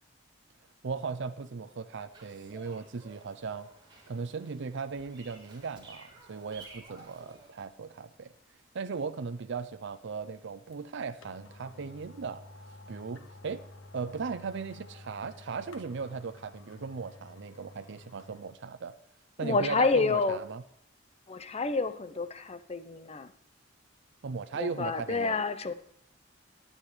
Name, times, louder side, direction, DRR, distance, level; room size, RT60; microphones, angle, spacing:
voice 1, 0.8-3.7 4.1-8.3 8.7-12.4 12.9-13.6 13.9-18.9 19.4-20.6 24.2-25.4, right 5 dB, 65° right, 11 dB, 0.5 m, -37 dB
Bird vocalization bird call bird song, 2.1-7.5, right 2 dB, 25° right, 3.9 m, -54 dB
sound 1, 10.7-10.8 11.2-18.5 18.9-19.0, left 2 dB, 85° left, 1.2 m, -51 dB
voice 2, 19.4-20.4 21.3-23.3 24.5-25.7, left 3 dB, 35° left, 11 dB, 0.7 m, -29 dB
20.0 x 8.9 x 3.3 m, 0.69 s
head